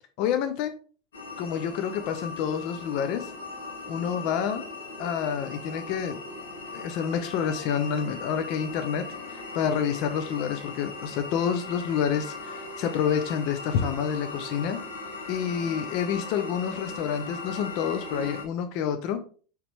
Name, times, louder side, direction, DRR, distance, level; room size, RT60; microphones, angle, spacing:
voice 1, 0.2-0.7 1.4-3.3 3.9-4.6 5.0-6.2 6.7-14.8 15.3-19.2, left 8 dB, 50° left, 8 dB, 0.5 m, -28 dB
sound 1, 1.1-18.4, left 3 dB, 70° left, 1.1 m, -38 dB
4.8 x 3.2 x 3.2 m, 0.40 s
figure-of-eight pair, 80°, 0 cm